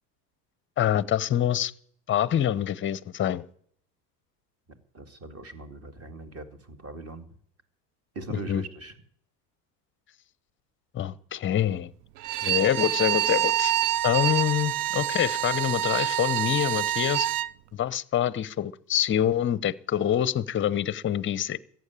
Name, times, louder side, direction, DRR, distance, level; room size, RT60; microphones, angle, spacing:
voice 1, 0.8-1.7 2.1-3.5 8.3-8.6 10.9-11.9 12.4-13.7 14.0-17.3 17.7-21.6, left 10 dB, 25° left, 0.7 m, -26 dB
voice 2, 4.7-7.2 8.2-8.9, right 2 dB, 30° right, 2.3 m, -40 dB
Bowed string instrument, 12.2-17.5, right 13 dB, 65° right, 0.7 m, -26 dB
14.5 x 9.4 x 8.7 m
hypercardioid pair, 85°, 49 cm